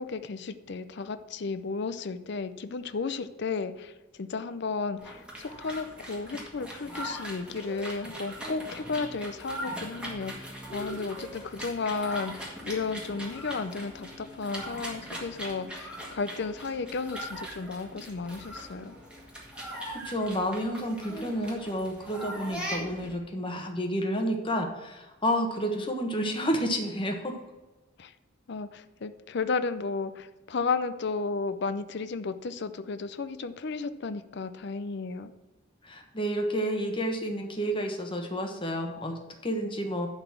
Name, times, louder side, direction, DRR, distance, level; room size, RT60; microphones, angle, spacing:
voice 1, 0.0-19.0 28.0-28.1 28.5-35.3, left 4 dB, 55° left, 12 dB, 0.5 m, -33 dB
sound 1, 5.0-23.1, equal, 5° right, 1.9 m, -40 dB
voice 2, 19.7-27.3 35.8-40.1, equal, 25° left, 3 dB, 1.2 m, -30 dB
11.0 x 4.1 x 7.4 m, 1.1 s
head